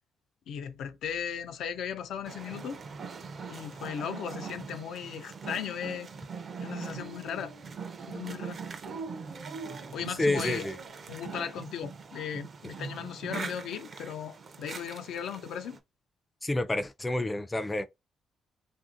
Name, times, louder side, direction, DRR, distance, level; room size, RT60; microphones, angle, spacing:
voice 1, 0.5-2.8 3.5-6.1 6.6-7.5 8.1-8.6 9.9-10.7 11.1-15.8, left 8 dB, 75° left, 0.4 m, -37 dB
sound 1, 2.2-15.8, right 5 dB, 45° right, 0.5 m, -42 dB
Dog, 6.5-8.0 8.8-11.1, right 4 dB, 70° right, 0.8 m, -45 dB
voice 2, 10.2-10.8 16.4-17.9, left 2 dB, 15° left, 0.4 m, -29 dB
2.8 x 2.6 x 2.5 m
cardioid pair, 90°, 0 cm